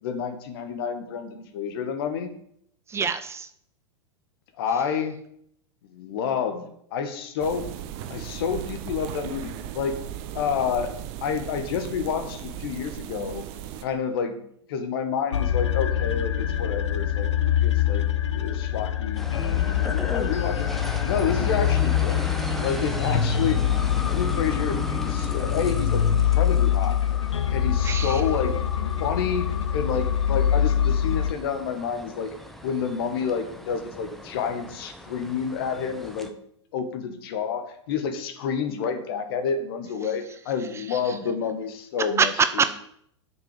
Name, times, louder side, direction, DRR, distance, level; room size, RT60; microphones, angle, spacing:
voice 1, 0.0-2.3 4.6-5.2 5.8-7.7 8.1-10.0 10.3-10.9 11.2-13.4 13.8-14.4 14.7-17.3 17.6-18.0 18.3-20.7 21.0-22.2 22.6-23.6 23.9-27.2 27.5-28.6 29.0-32.3 32.6-36.3 36.7-42.7, left 6 dB, 55° left, 8 dB, 1.8 m, -29 dB
voice 2, 2.9-3.5 27.8-28.2 40.7-41.2 42.2-42.6, right 6 dB, 15° right, 11 dB, 0.6 m, -25 dB
sound 1, 7.4-13.8, right 10 dB, 45° right, 1.2 m, -37 dB
sound 2, 15.3-31.3, left 9 dB, 75° left, 0.7 m, -24 dB
sound 3, 19.2-36.3, equal, ahead, 1.2 m, -37 dB
8.1 x 6.8 x 7.9 m, 0.68 s
figure-of-eight pair, 95°, 15 cm